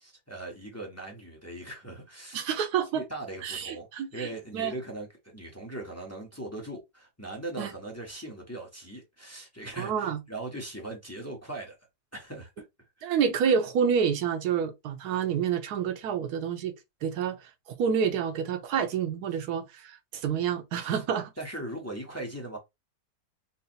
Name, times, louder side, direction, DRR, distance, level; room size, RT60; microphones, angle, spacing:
voice 1, 0.0-2.5 2.9-11.8 12.1-12.7 13.0-13.2 20.8-21.0 21.4-22.6, right 1 dB, 15° left, 0.6 m, -40 dB
voice 2, 2.3-3.0 3.4-4.3 4.5-4.7 7.6-7.7 9.8-10.2 13.0-16.7 17.0-17.4 17.8-21.3, right 7 dB, 60° right, 1.2 m, -28 dB
4.0 x 2.1 x 4.0 m
omnidirectional pair, 2.0 m